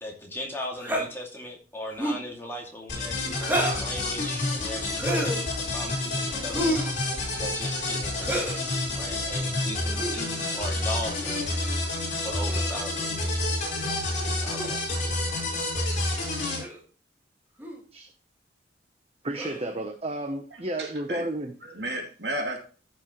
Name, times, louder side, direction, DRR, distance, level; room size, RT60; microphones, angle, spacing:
voice 1, 0.0-6.8 7.4-11.5 12.2-13.5 14.4-14.8, left 1 dB, 15° left, 2.4 m, -38 dB
sound 1, 0.8-1.1 1.9-2.3 3.4-3.9 4.9-5.4 6.5-6.9 8.2-8.6 9.9-10.2 11.2-11.5 12.4-12.9 14.6-14.7 15.7-15.9 16.6-16.8 17.6-17.8 19.3-19.7, right 1 dB, 10° right, 2.0 m, -29 dB
sound 2, 2.9-16.6, left 2 dB, 40° left, 4.5 m, -29 dB
voice 2, 19.2-21.5, right 1 dB, 30° right, 0.9 m, -32 dB
voice 3, 20.5-21.3 21.6-22.6, right 1 dB, 60° right, 2.7 m, -33 dB
14.5 x 6.3 x 3.1 m
head